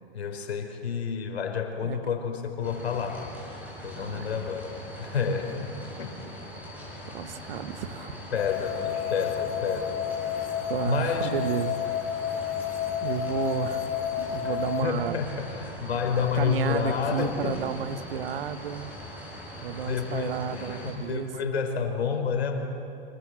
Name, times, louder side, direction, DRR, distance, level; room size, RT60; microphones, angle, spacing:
voice 1, 0.1-3.3 3.8-6.1 7.2-7.3 8.3-10.0 10.9-11.4 14.4-14.6 14.8-17.7 19.9-22.6, left 6 dB, 90° left, 5 dB, 4.5 m, -30 dB
sound 1, 2.6-20.9, equal, 5° right, 6.4 m, -41 dB
voice 2, 3.9-4.3 7.1-8.2 10.7-11.8 12.2-12.5 13.0-13.9 14.2-15.2 16.3-18.9 19.6-21.6, right 8 dB, 65° right, 11 dB, 1.7 m, -32 dB
sound 2, 8.3-14.8, left 10 dB, 30° left, 1.0 m, -31 dB
26.0 x 26.0 x 7.7 m, 2.7 s
hypercardioid pair, 155°, 31 cm